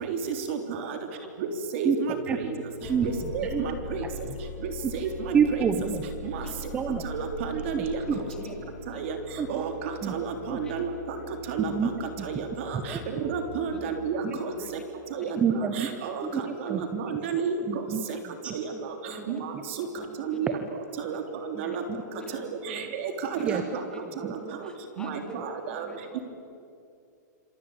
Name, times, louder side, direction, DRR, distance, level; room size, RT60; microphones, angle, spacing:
voice 1, 0.1-1.0 1.4-2.4 3.0-4.0 4.6-5.6 6.2-6.5 7.0-8.0 8.9-9.2 9.5-11.2 11.5-11.9 12.2-14.5 15.1-15.3 15.5-16.2 16.6-17.5 18.5-18.7 19.3-19.9 20.2-20.5 21.0-21.8 22.7-23.6 24.2-24.3 25.0-25.9, right 6 dB, 40° right, 6 dB, 3.5 m, -32 dB
sound 1, 2.0-15.4, left 3 dB, 30° left, 6.2 m, -41 dB
voice 2, 5.3-6.1 6.5-7.1 7.7-8.2 9.4-9.6 10.0-10.1 10.5-10.6 11.6-11.9 12.2-12.3 12.7-13.0 14.2-14.4 15.4-15.9 16.2-17.0 17.7-18.0 18.4-18.5 19.2-19.3 21.6-22.0 23.4-23.6 24.2-24.3, right 7 dB, 10° right, 9 dB, 0.9 m, -28 dB
voice 3, 8.1-8.5 8.9-9.0 10.6-10.7 12.9-13.0 13.7-14.0 14.3-14.7 15.2-15.3 18.7-18.8 19.1-19.4 19.8-20.4 21.7-21.8 22.1-22.9 23.3-24.0 24.4-25.4 25.7-26.2, left 1 dB, 10° left, 3 dB, 3.0 m, -44 dB
26.5 x 24.5 x 8.8 m, 2.5 s
supercardioid pair, 175°, 10 cm